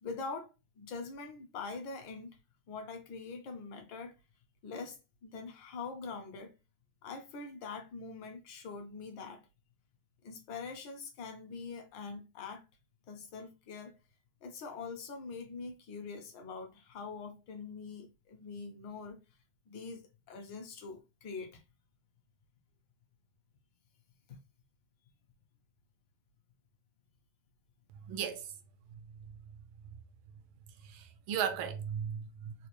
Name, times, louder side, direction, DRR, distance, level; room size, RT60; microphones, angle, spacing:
voice 1, 0.0-2.4 2.7-4.1 4.6-6.5 7.0-9.4 10.2-12.6 13.1-13.9 14.4-19.2 19.7-20.0 20.3-21.6, left 4 dB, 65° left, 1.5 m, -44 dB
voice 2, 28.1-28.5 30.8-32.7, right 8 dB, 75° right, 1.4 m, -36 dB
4.1 x 2.4 x 2.9 m
omnidirectional pair, 2.3 m